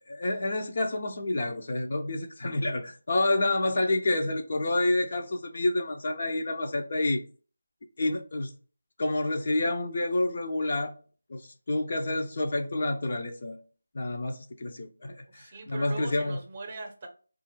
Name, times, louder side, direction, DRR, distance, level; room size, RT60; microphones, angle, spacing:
voice 1, 0.1-7.2 8.0-8.5 9.0-11.0 11.3-13.6 13.9-16.4, left 2 dB, 40° left, 0.5 m, -28 dB
voice 2, 15.3-17.1, right 3 dB, 25° right, 0.7 m, -40 dB
4.2 x 2.4 x 3.0 m
figure-of-eight pair, 160°, 0 cm